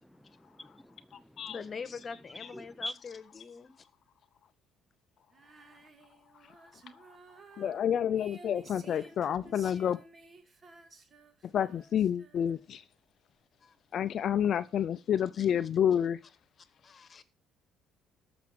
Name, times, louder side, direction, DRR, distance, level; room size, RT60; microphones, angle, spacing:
voice 1, 0.0-1.5 2.5-3.0, left 1 dB, ahead, 0.5 m, -44 dB
voice 2, 1.5-3.9 9.6-9.8 13.6-13.8 15.2-15.5 16.7-17.2, left 5 dB, 35° left, 1.4 m, -44 dB
Female singing, 5.3-12.8, right 3 dB, 35° right, 2.4 m, -55 dB
voice 3, 7.6-10.0 11.5-12.8 13.9-16.2, left 9 dB, 55° left, 0.5 m, -29 dB
14.0 x 6.0 x 6.0 m
supercardioid pair, 70°, 0 cm